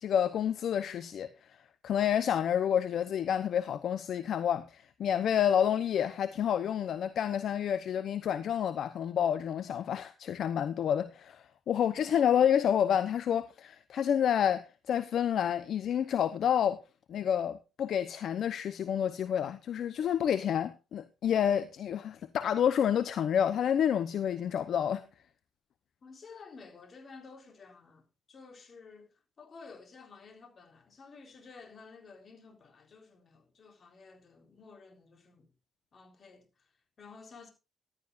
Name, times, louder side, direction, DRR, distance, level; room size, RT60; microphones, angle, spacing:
voice 1, 0.0-1.6 1.8-16.8 17.1-25.1, left 9 dB, 65° left, 0.8 m, -29 dB
voice 2, 26.0-35.5 35.9-37.5, left 4 dB, 45° left, 3.8 m, -53 dB
15.0 x 12.0 x 2.5 m
cardioid pair, 90°, 0 cm